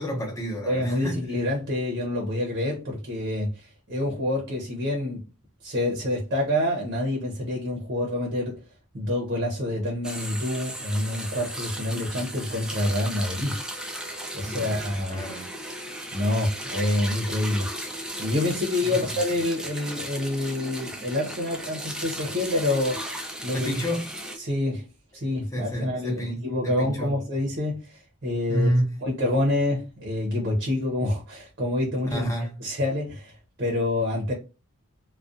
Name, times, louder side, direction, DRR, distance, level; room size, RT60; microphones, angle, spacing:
voice 1, 0.0-1.2 14.4-15.5 18.8-19.1 23.5-24.1 25.5-27.1 28.5-29.0 32.0-32.6, equal, 15° left, 0.8 m, -29 dB
voice 2, 0.7-5.2 5.6-8.6 8.9-13.6 14.3-15.2 16.1-23.1 23.4-23.7 24.4-24.8 25.1-27.9 28.2-28.7 29.0-32.2 32.6-33.3 33.6-34.3, left 1 dB, 45° right, 0.7 m, -27 dB
sound 1, 10.0-24.4, right 1 dB, 5° right, 0.3 m, -36 dB
2.4 x 2.2 x 2.5 m
head